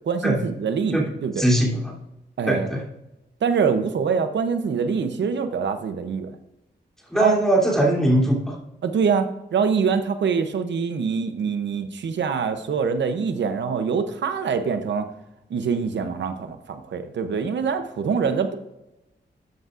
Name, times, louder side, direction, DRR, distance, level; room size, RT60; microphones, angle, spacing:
voice 1, 0.0-1.4 2.4-2.7 3.4-6.3 7.1-7.4 8.8-15.1 15.5-18.6, right 6 dB, 90° right, 8 dB, 0.7 m, -24 dB
voice 2, 1.4-1.9 2.4-2.8 7.1-8.5, right 1 dB, 5° left, -4 dB, 3.1 m, -20 dB
13.5 x 8.1 x 2.5 m, 0.91 s
wide cardioid pair, 145°, 18 cm